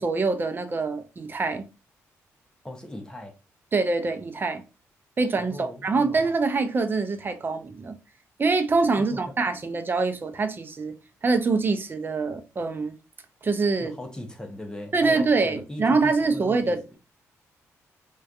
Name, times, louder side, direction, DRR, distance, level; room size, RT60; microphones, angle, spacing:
voice 1, 0.0-1.6 3.7-4.6 5.2-7.9 8.4-10.9 11.2-12.9 13.4-13.9 14.9-17.0, right 3 dB, 35° right, 0.5 m, -24 dB
voice 2, 2.6-3.3 5.4-6.2 9.0-9.2 13.8-17.0, left 1 dB, 10° left, 0.6 m, -39 dB
2.5 x 2.2 x 2.3 m
cardioid pair, 75°, 6 cm